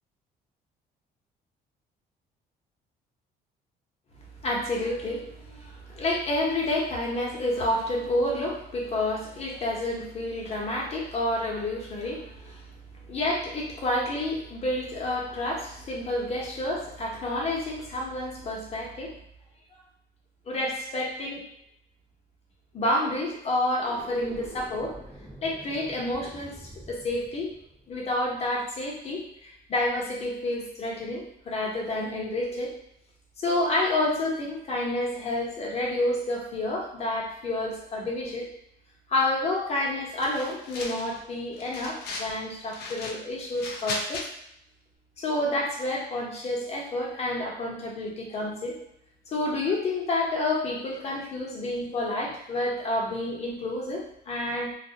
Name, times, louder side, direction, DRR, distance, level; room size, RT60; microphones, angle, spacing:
voice 1, 4.4-12.6 13.1-19.1 20.5-21.4 22.7-25.0 25.4-26.5 26.9-27.5 27.9-32.7 33.4-38.5 39.1-44.3 45.2-48.8 49.3-54.7, left 1 dB, 40° left, -2 dB, 0.8 m, -29 dB
sound 1, 23.7-29.0, equal, 5° right, 0.9 m, -47 dB
sound 2, 40.2-41.2 41.5-42.3 42.7-44.2, left 3 dB, 70° left, 0.5 m, -36 dB
2.3 x 2.1 x 2.7 m, 0.77 s
cardioid pair, 110°, 17 cm